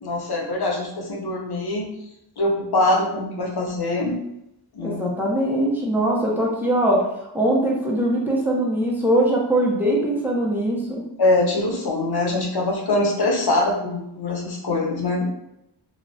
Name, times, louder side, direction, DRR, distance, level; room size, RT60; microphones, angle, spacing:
voice 1, 0.0-1.9 2.4-4.2 4.7-5.0 11.2-15.2, left 2 dB, 60° left, 1 dB, 0.6 m, -23 dB
voice 2, 4.8-11.0, right 1 dB, 5° right, -3 dB, 0.7 m, -21 dB
3.0 x 2.3 x 2.6 m, 0.82 s
wide cardioid pair, 85°, 43 cm